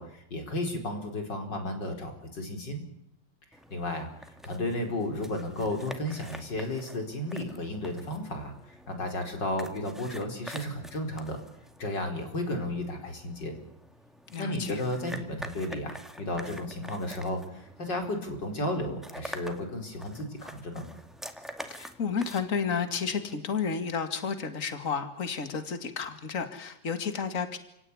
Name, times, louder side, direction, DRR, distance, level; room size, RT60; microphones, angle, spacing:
voice 1, 0.0-2.8 3.7-11.4 11.8-13.6 14.4-20.9, left 1 dB, 65° left, 4 dB, 5.3 m, -33 dB
sound 1, 3.5-23.4, equal, ahead, 2.1 m, -47 dB
voice 2, 14.3-14.8 21.7-27.6, left 6 dB, 45° left, 8 dB, 2.5 m, -32 dB
29.0 x 17.0 x 9.8 m, 0.78 s
omnidirectional pair, 2.1 m